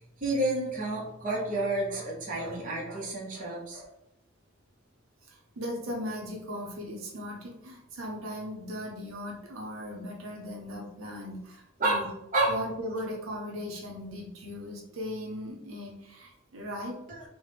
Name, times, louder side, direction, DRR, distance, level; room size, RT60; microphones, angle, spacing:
voice 1, 0.2-3.9 11.8-12.1 12.3-12.5 17.1-17.2, right 2 dB, 40° right, -4 dB, 0.7 m, -30 dB
voice 2, 5.2-12.1 12.5-17.0, equal, 80° right, 0 dB, 0.6 m, -38 dB
3.1 x 2.1 x 3.2 m, 0.86 s
head